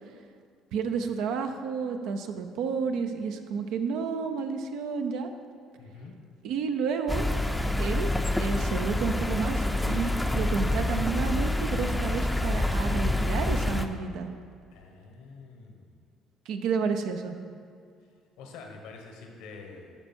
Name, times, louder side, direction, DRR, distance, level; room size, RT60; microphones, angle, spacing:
voice 1, 0.7-5.3 6.4-7.3 7.8-8.1 8.4-14.3 16.5-17.4, right 5 dB, 75° right, 6 dB, 0.6 m, -31 dB
voice 2, 5.8-6.2 14.7-16.0 18.4-19.9, left 4 dB, 80° left, 2 dB, 1.1 m, -46 dB
sound 1, 7.1-13.9, left 1 dB, 5° left, 0.5 m, -27 dB
8.9 x 5.5 x 4.4 m, 2.3 s
supercardioid pair, 80°, 0 cm